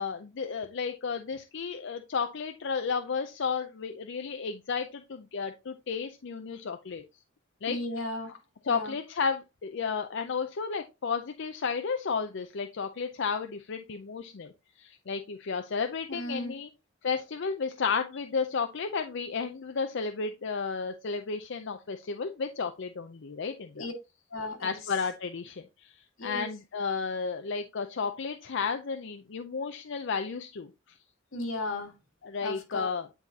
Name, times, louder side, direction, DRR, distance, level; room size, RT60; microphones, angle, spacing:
voice 1, 0.0-7.0 7.6-7.8 8.6-14.5 14.8-16.7 17.0-23.9 24.6-26.0 26.2-30.7 32.2-33.1, left 5 dB, 60° left, 0.5 m, -33 dB
voice 2, 7.7-8.3 8.7-8.9 16.1-16.6 23.8-23.9 24.3-24.8 26.2-26.5 31.3-31.9 32.4-32.9, left 2 dB, 90° left, 1.7 m, -35 dB
9.4 x 4.0 x 2.8 m
head